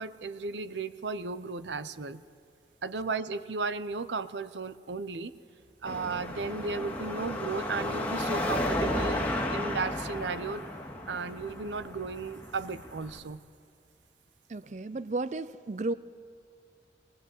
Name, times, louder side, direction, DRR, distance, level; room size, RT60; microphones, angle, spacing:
voice 1, 0.0-2.2 2.8-5.3 5.8-9.2 9.5-10.7 11.1-13.4, right 4 dB, 85° right, 13 dB, 0.7 m, -35 dB
Car passing by / Traffic noise roadway noise / Engine, 5.9-13.2, left 1 dB, 10° left, 2.1 m, -33 dB
voice 2, 14.5-15.9, right 2 dB, 40° right, 15 dB, 0.5 m, -33 dB
23.0 x 18.5 x 8.3 m, 2.2 s
head